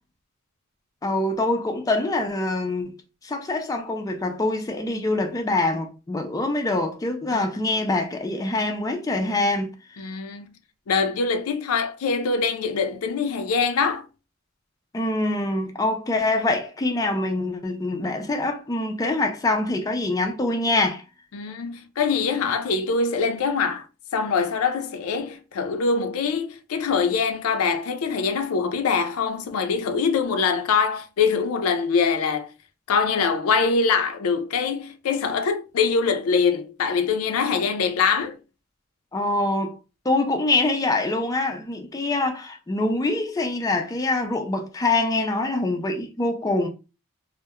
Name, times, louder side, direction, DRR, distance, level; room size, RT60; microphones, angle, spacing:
voice 1, 1.0-2.9 3.2-9.7 14.9-21.0 39.1-39.8 40.1-46.7, left 2 dB, 15° left, 0.3 m, -24 dB
voice 2, 10.0-10.5 10.9-14.0 21.3-23.9 24.1-32.5 32.9-38.4, left 5 dB, 90° left, 0.4 m, -23 dB
2.3 x 2.0 x 2.8 m
head